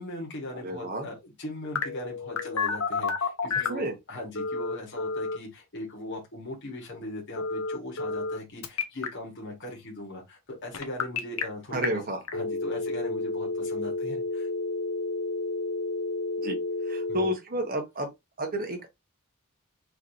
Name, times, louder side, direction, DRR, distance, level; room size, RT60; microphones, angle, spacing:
voice 1, 0.0-12.0 12.3-14.5 17.1-17.3, left 1 dB, 55° left, 1.7 m, -39 dB
voice 2, 0.6-1.1 3.7-3.9 11.7-12.2 16.4-16.6 16.9-18.1 18.4-18.9, right 1 dB, 45° right, 1.3 m, -31 dB
Telephone, 1.7-3.8 4.3-5.4 7.4-8.4 8.6-9.1 10.7-11.4 11.8-11.9 12.3-17.3, left 4 dB, 85° left, 1.0 m, -30 dB
4.8 x 3.2 x 2.8 m
head